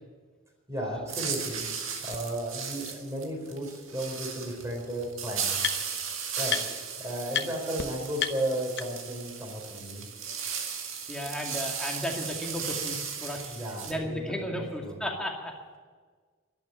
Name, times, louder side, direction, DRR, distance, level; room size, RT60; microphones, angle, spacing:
voice 1, 0.7-1.7 2.0-5.8 6.4-6.6 7.0-10.1 13.5-14.5 14.8-15.0, right 1 dB, 15° right, 1 dB, 4.1 m, -34 dB
sound 1, 1.1-13.9, right 6 dB, 70° right, 2.0 m, -36 dB
sound 2, 2.1-2.2 2.8-2.9 4.2-4.3 4.6-6.1 6.5-6.9 7.3-7.5 7.8-7.9 8.2-9.2, left 8 dB, 55° left, 0.9 m, -33 dB
voice 2, 11.1-13.6 13.9-15.8, equal, 5° left, 0 dB, 2.2 m, -34 dB
12.0 x 11.5 x 9.4 m, 1.5 s
head